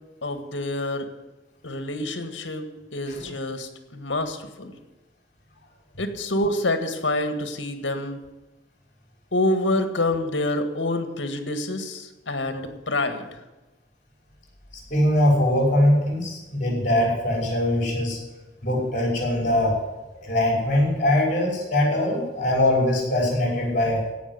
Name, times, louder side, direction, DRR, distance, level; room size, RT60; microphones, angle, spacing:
voice 1, 0.2-1.1 1.6-4.7 6.0-8.2 9.3-13.4, left 1 dB, 85° left, 8 dB, 1.8 m, -27 dB
voice 2, 14.9-18.2 18.6-19.7 20.2-24.0, left 1 dB, 45° left, -1 dB, 5.8 m, -22 dB
17.0 x 6.2 x 9.5 m, 1.1 s
head